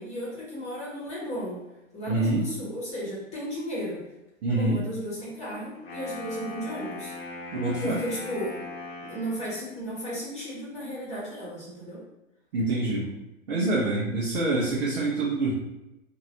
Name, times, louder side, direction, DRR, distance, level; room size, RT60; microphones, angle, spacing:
voice 1, 0.0-1.6 1.9-4.0 4.5-7.1 7.8-8.6 9.0-12.0, equal, 15° left, -6 dB, 1.2 m, -34 dB
voice 2, 2.1-2.4 4.4-4.8 7.5-8.0 12.5-13.1 13.5-15.5, right 2 dB, 50° right, -5 dB, 0.9 m, -25 dB
Wind instrument woodwind instrument, 5.7-9.7, left 2 dB, 45° left, 1.0 m, -40 dB
2.9 x 2.6 x 2.8 m, 0.94 s
figure-of-eight pair, 115°, 41 cm